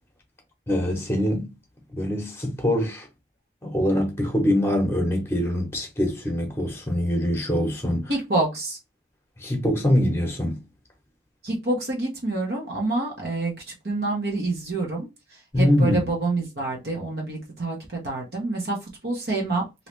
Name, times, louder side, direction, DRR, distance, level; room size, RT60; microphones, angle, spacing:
voice 1, 0.7-1.5 1.9-3.1 3.6-8.1 9.4-10.6 15.5-16.0, left 1 dB, 15° left, 0.9 m, -23 dB
voice 2, 8.1-8.8 11.4-19.6, right 2 dB, 60° right, 1.0 m, -27 dB
3.1 x 2.7 x 3.1 m
head